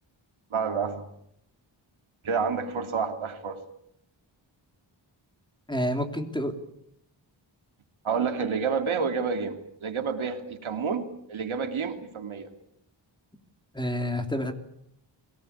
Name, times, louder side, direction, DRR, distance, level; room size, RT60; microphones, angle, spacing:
voice 1, 0.5-1.1 2.2-3.6 8.0-12.5, right 5 dB, 80° right, 6 dB, 2.9 m, -29 dB
voice 2, 5.7-6.5 13.7-14.5, equal, 10° left, 6 dB, 3.2 m, -28 dB
24.5 x 18.5 x 8.6 m, 0.74 s
cardioid pair, 75°, 48 cm